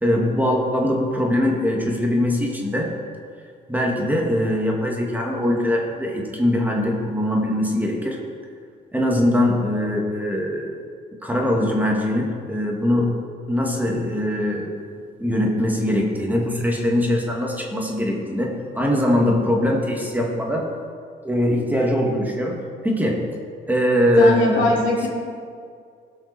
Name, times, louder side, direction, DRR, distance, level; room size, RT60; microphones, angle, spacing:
voice 1, 0.0-2.9 3.7-8.2 8.9-10.8 11.2-13.1 13.5-14.7 15.2-20.7 21.2-23.3 23.7-24.7, left 1 dB, 10° right, -1 dB, 1.9 m, -21 dB
voice 2, 24.2-25.1, left 2 dB, 75° left, -4 dB, 3.0 m, -20 dB
18.0 x 6.0 x 4.3 m, 2.2 s
cardioid pair, 90°, 20 cm